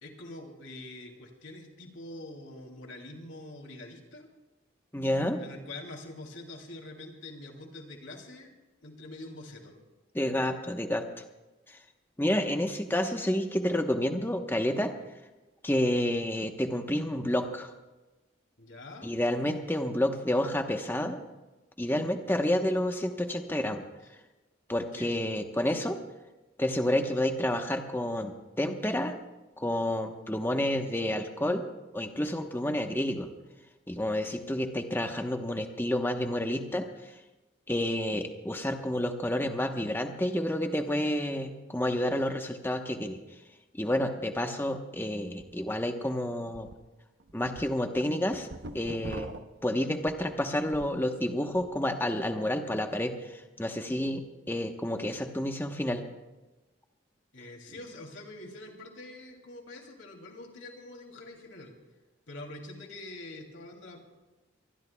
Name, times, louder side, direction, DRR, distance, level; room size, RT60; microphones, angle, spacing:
voice 1, 0.0-4.3 5.4-8.5 8.8-9.7 18.6-19.1 24.7-25.1 49.0-49.3 57.3-61.7 62.3-64.0, left 2 dB, 75° left, 2 dB, 2.8 m, -45 dB
voice 2, 4.9-5.4 10.1-11.0 11.7-11.8 12.2-14.9 15.6-17.7 19.0-21.2 21.8-23.8 24.7-26.0 26.6-29.2 29.6-31.6 31.9-33.3 33.9-36.9 37.7-43.2 43.8-46.7 47.3-48.5 48.7-49.3 49.6-56.0, left 1 dB, 10° left, 5 dB, 1.0 m, -29 dB
sound 1, 45.4-45.5 45.9-46.0 46.5-46.7 47.2-51.0 51.4-51.8, right 2 dB, 55° right, 0.8 m, -44 dB
25.0 x 19.5 x 2.3 m, 1.1 s
head